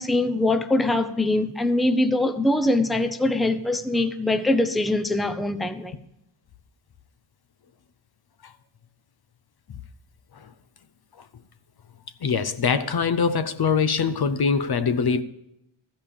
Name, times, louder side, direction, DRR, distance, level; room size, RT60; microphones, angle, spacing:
voice 1, 0.0-5.9, left 2 dB, ahead, 0.7 m, -23 dB
voice 2, 12.2-15.2, left 5 dB, 50° left, 0.7 m, -23 dB
13.5 x 5.4 x 8.5 m
cardioid pair, 75°, 49 cm